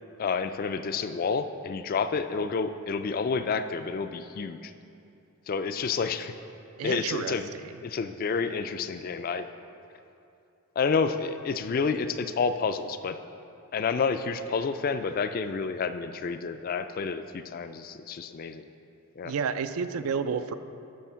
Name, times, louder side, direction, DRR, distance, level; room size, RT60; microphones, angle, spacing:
voice 1, 0.2-4.7 5.5-6.3 6.8-7.5 7.8-9.5 10.8-13.2 13.7-18.6 19.2-19.3, left 5 dB, 40° left, 10 dB, 0.3 m, -29 dB
voice 2, 6.8-7.4 7.7-7.8 19.2-20.5, right 6 dB, 70° right, 11 dB, 0.4 m, -30 dB
12.0 x 4.3 x 5.6 m, 2.7 s
head